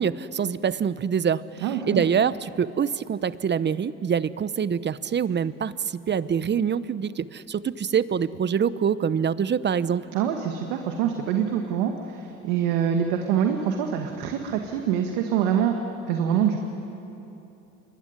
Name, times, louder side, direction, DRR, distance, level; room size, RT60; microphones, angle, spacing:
voice 1, 0.0-5.7 6.1-10.0, right 7 dB, 35° right, 16 dB, 0.9 m, -25 dB
voice 2, 1.6-2.0 10.1-15.8 16.1-16.6, right 8 dB, 85° right, 4 dB, 1.9 m, -25 dB
27.0 x 22.5 x 9.8 m, 3.0 s
supercardioid pair, 80°, 31 cm